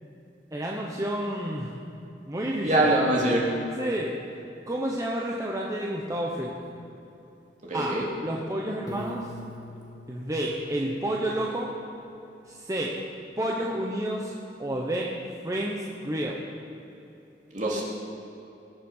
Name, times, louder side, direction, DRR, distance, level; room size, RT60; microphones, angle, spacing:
voice 1, 0.5-1.7 2.3-2.9 3.8-4.2 4.7-6.6 7.7-8.0 8.2-9.3 10.1-11.7 12.5-12.9 13.4-14.3 14.6-15.1 15.4-16.4, right 1 dB, 20° right, -2 dB, 1.0 m, -30 dB
voice 2, 2.6-3.5 7.6-8.0 17.5-17.8, right 1 dB, 45° right, -3 dB, 2.7 m, -23 dB
Piano, 8.9-11.8, equal, 20° left, 1.8 m, -43 dB
20.0 x 7.4 x 5.6 m, 3.0 s
head